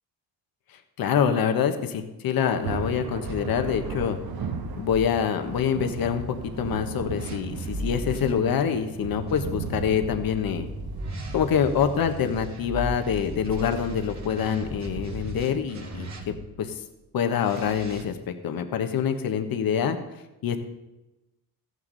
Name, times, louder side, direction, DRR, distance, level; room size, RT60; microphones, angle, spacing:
voice 1, 1.0-4.2 4.8-10.6 11.3-16.7 17.1-20.0 20.4-20.6, left 8 dB, 65° left, 7 dB, 1.3 m, -26 dB
Thunder, 2.5-16.4, right 5 dB, 70° right, 1.3 m, -38 dB
sound 1, 3.2-8.3 9.3-16.6 17.4-18.0, right 1 dB, 45° right, 2.1 m, -38 dB
14.0 x 9.6 x 4.1 m, 1.0 s
cardioid pair, 90°, 38 cm